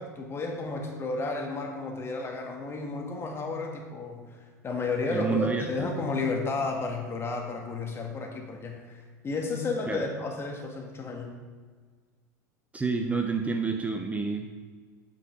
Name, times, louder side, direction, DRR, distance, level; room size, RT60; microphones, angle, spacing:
voice 1, 0.0-11.3, left 3 dB, 25° left, 2 dB, 1.9 m, -32 dB
voice 2, 5.1-5.9 9.9-10.0 12.7-14.5, right 4 dB, 15° right, 4 dB, 0.8 m, -29 dB
9.3 x 5.9 x 5.1 m, 1.5 s
hypercardioid pair, 85°, 9 cm